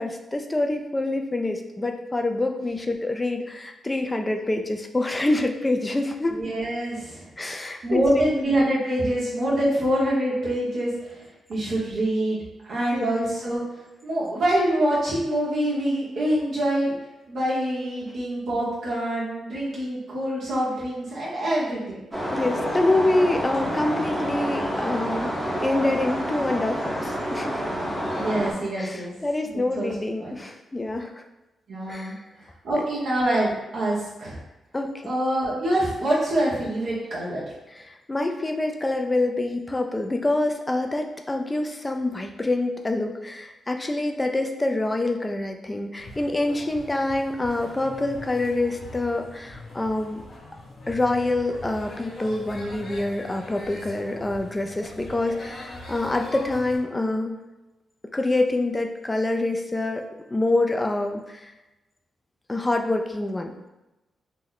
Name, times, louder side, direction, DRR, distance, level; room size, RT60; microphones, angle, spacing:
voice 1, 0.0-6.4 7.4-8.5 12.9-13.2 22.3-25.3 25.6-27.6 28.8-31.2 31.9-32.2 34.7-35.0 37.7-50.2 50.9-57.4 58.1-61.5 62.5-63.5, left 2 dB, 20° left, 4 dB, 0.3 m, -26 dB
voice 2, 6.3-7.3 7.8-11.2 11.5-12.4 12.7-13.6 14.0-16.9 17.3-22.0 28.1-29.1 29.5-29.9 30.2-30.4 31.7-32.2 32.6-34.4 35.0-37.4, right 1 dB, 70° right, -7 dB, 1.0 m, -25 dB
sound 1, 22.1-28.5, equal, 25° right, 0.9 m, -28 dB
sound 2, 46.0-56.8, left 2 dB, 50° left, 1.0 m, -42 dB
3.0 x 2.1 x 3.8 m, 1.0 s
cardioid pair, 95°, 0 cm